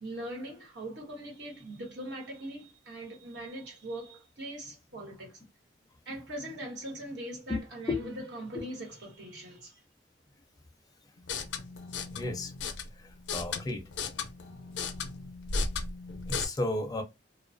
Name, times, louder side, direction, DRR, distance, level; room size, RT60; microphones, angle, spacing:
voice 1, 0.0-5.3 6.1-9.8, right 1 dB, 85° right, 1.2 m, -41 dB
voice 2, 7.9-8.2 8.5-8.6 12.1-12.5 13.0-13.8 16.3-17.0, left 2 dB, 20° left, 0.4 m, -33 dB
sound 1, 11.2-16.5, left 4 dB, 85° left, 0.4 m, -36 dB
2.2 x 2.2 x 2.5 m
head